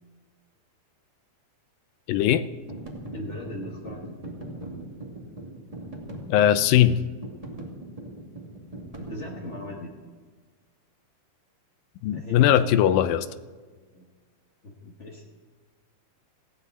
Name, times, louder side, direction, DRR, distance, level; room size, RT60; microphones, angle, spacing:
voice 1, 2.1-2.5 6.3-7.0 12.0-13.3, left 11 dB, 85° left, 13 dB, 2.4 m, -20 dB
sound 1, 2.5-9.9, right 1 dB, 15° right, 1.6 m, -40 dB
voice 2, 3.1-4.7 9.0-10.0 12.1-12.7 13.9-14.1 14.6-15.2, left 1 dB, 50° left, -2 dB, 0.8 m, -39 dB
18.5 x 16.0 x 4.1 m, 1.5 s
omnidirectional pair, 4.0 m